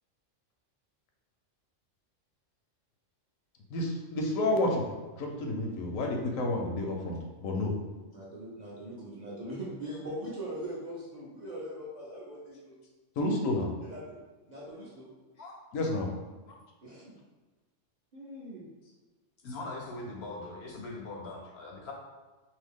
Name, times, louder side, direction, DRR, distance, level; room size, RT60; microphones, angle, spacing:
voice 1, 3.7-4.9 5.2-7.7 13.2-13.7 15.7-16.1, left 2 dB, 85° left, 1 dB, 1.0 m, -30 dB
voice 2, 8.1-12.7 13.8-14.0 14.5-15.1 16.8-17.1 18.1-18.7, right 1 dB, 45° right, -7 dB, 0.6 m, -41 dB
voice 3, 19.4-21.9, left 2 dB, 65° left, -1 dB, 0.7 m, -41 dB
2.8 x 2.7 x 3.5 m, 1.2 s
omnidirectional pair, 1.4 m